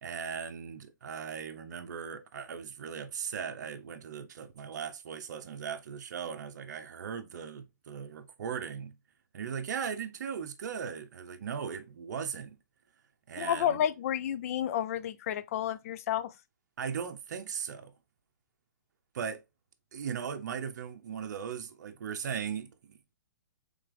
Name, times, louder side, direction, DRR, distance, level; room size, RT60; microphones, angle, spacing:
voice 1, 0.0-8.9 9.3-12.6 13.3-13.8 16.8-17.9 19.1-19.4 19.9-23.2, right 7 dB, 65° right, 0.6 m, -38 dB
voice 2, 13.4-16.3, left 10 dB, 50° left, 0.4 m, -31 dB
3.4 x 3.3 x 3.6 m
hypercardioid pair, 130°, 10 cm